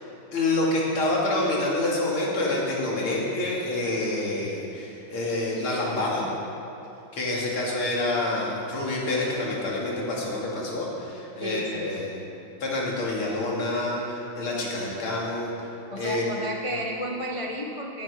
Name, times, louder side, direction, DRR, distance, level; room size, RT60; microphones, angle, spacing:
voice 1, 0.3-6.3 7.1-12.2 12.6-15.5 16.0-16.2, left 2 dB, 90° left, -4 dB, 3.3 m, -27 dB
voice 2, 11.4-11.9 15.9-18.0, equal, 40° left, 0 dB, 0.4 m, -32 dB
17.5 x 10.5 x 4.9 m, 2.8 s
omnidirectional pair, 2.3 m